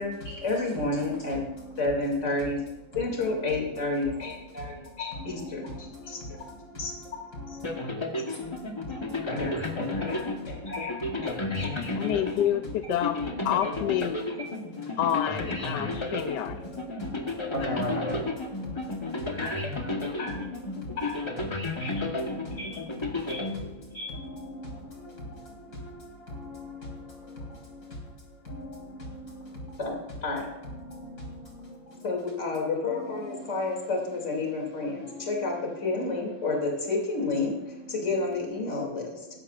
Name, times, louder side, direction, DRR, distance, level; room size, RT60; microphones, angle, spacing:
voice 1, 0.4-1.4 1.8-2.6 2.9-6.2 6.8-6.9 7.5-7.6 9.3-10.9 11.2-11.7 12.0-12.2 17.5-18.2 19.4-19.7 20.2-20.4 21.0-21.1 21.8-22.0 22.6-22.7 23.3-23.4 23.9-24.1 29.8-30.0 30.2-30.5 32.0-39.3, left 3 dB, 40° left, 0 dB, 3.0 m, -31 dB
voice 2, 5.5-6.9 7.6-7.8 8.2-9.3 11.2-12.1 15.7-17.5 18.6-19.1 19.8-21.0 22.0-22.6 23.1-23.3 24.5-27.9 28.4-29.8 30.8-32.0 33.2-33.5 35.0-35.2, left 1 dB, 55° left, -3 dB, 4.8 m, -42 dB
sound 1, 7.6-24.2, left 2 dB, 20° left, 0.9 m, -33 dB
voice 3, 12.0-13.2 13.4-14.2 15.0-16.6, left 11 dB, 75° left, 8 dB, 1.1 m, -28 dB
16.0 x 14.0 x 2.4 m, 1.0 s
omnidirectional pair, 2.1 m